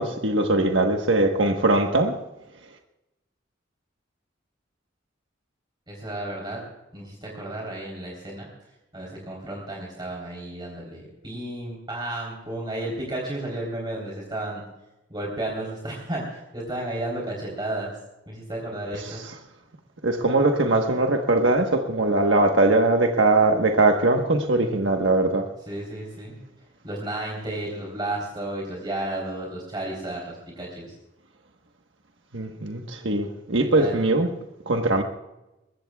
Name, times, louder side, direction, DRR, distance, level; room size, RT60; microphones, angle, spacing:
voice 1, 0.0-2.1 19.0-19.3 20.0-25.4 32.3-34.3 34.7-35.0, right 2 dB, 70° right, 3 dB, 1.3 m, -21 dB
voice 2, 5.9-6.6 6.9-8.5 8.9-14.6 15.1-17.9 18.3-19.2 25.7-26.4 26.8-30.9 33.8-34.0, right 1 dB, 25° right, -3 dB, 3.7 m, -32 dB
22.5 x 21.5 x 2.4 m, 0.97 s
head